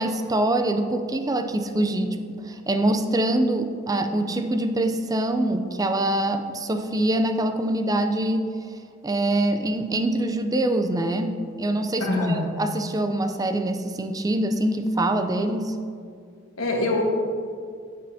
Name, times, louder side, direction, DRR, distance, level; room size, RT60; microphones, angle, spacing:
voice 1, 0.0-8.5 9.0-15.8, right 1 dB, 15° right, 7 dB, 0.4 m, -24 dB
voice 2, 12.0-12.5 16.6-17.0, left 2 dB, 75° left, -1 dB, 1.3 m, -24 dB
8.6 x 7.8 x 2.7 m, 2.2 s
head